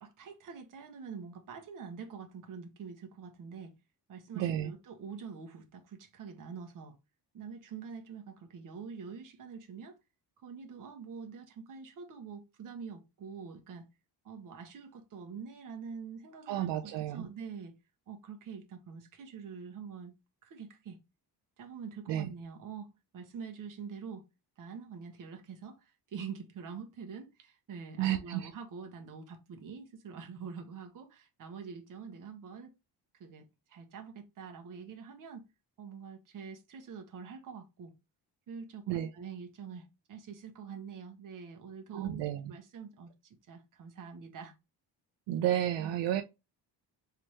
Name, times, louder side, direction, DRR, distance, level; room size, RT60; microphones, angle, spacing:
voice 1, 0.0-3.7 4.1-7.0 7.3-10.0 10.4-13.8 14.2-17.7 18.1-20.1 20.4-21.0 21.6-24.3 24.6-32.7 33.2-35.5 35.8-37.9 38.5-44.5 45.8-46.0, right 6 dB, 50° right, 0.8 m, -45 dB
voice 2, 4.3-4.7 16.5-17.3 22.1-22.3 28.0-28.5 38.9-39.1 41.9-42.5 45.3-46.2, right 12 dB, 75° right, 0.5 m, -32 dB
3.3 x 2.8 x 3.0 m
cardioid pair, 160°, 43 cm